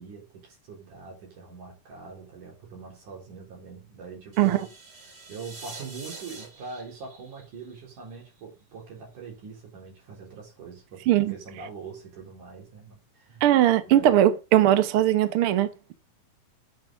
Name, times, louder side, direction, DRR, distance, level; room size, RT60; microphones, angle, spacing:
voice 1, 0.0-4.7 5.1-13.4 13.9-14.3, right 5 dB, 85° right, 5.5 m, -43 dB
sound 1, 4.3-8.4, right 3 dB, 35° right, 2.6 m, -45 dB
voice 2, 13.4-15.7, right 12 dB, 65° right, 1.5 m, -20 dB
8.7 x 6.2 x 5.8 m
omnidirectional pair, 3.5 m